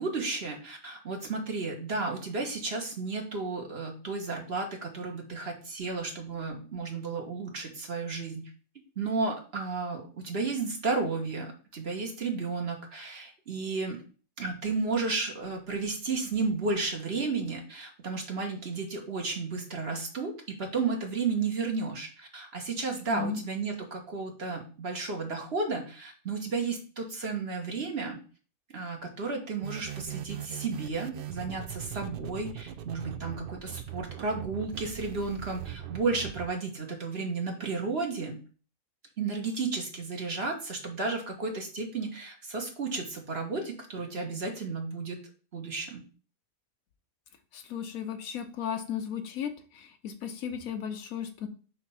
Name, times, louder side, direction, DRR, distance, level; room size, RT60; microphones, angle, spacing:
voice 1, 0.0-8.5 9.0-14.0 14.4-28.2 28.7-38.4 39.2-45.2 45.5-46.0, right 4 dB, 45° right, 1 dB, 1.4 m, -33 dB
sound 1, 29.6-36.5, right 11 dB, 85° right, 0.4 m, -40 dB
voice 2, 47.5-51.5, left 8 dB, 75° left, 7 dB, 1.2 m, -35 dB
6.1 x 2.9 x 5.5 m, 0.39 s
omnidirectional pair, 1.5 m